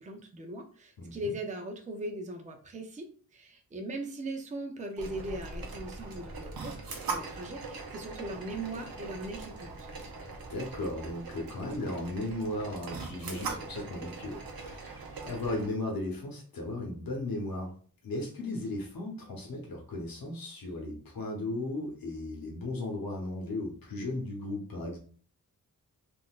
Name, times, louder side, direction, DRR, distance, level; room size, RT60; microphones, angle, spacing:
voice 1, 0.0-6.8 7.1-9.9, right 1 dB, 20° right, 3 dB, 0.5 m, -39 dB
voice 2, 1.0-1.3 10.5-17.7 18.0-25.0, left 2 dB, 80° left, 0 dB, 0.9 m, -36 dB
sound 1, 5.0-15.7, right 4 dB, 85° right, 0.8 m, -41 dB
3.7 x 2.5 x 2.3 m, 0.43 s
wide cardioid pair, 130°, 35 cm